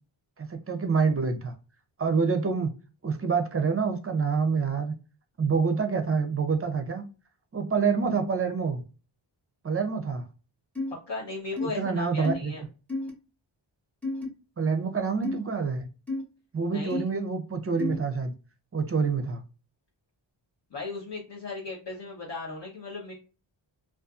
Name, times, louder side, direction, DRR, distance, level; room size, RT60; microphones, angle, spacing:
voice 1, 0.4-1.5 2.0-2.7 3.0-4.9 5.4-7.0 7.5-8.8 9.6-10.2 11.6-12.5 14.6-15.9 16.5-18.3 18.7-19.4, right 5 dB, 30° right, 0.5 m, -27 dB
sound 1, 10.8-10.9 11.6-11.7 12.2-12.4 12.9-13.1 14.0-14.3 15.2-15.4 16.1-16.2 16.9-17.0 17.8-18.0, left 2 dB, 5° left, 0.7 m, -30 dB
voice 2, 11.1-12.6 16.7-17.0 20.7-23.1, left 3 dB, 60° left, 0.9 m, -36 dB
2.5 x 2.4 x 2.3 m
wide cardioid pair, 90°, 48 cm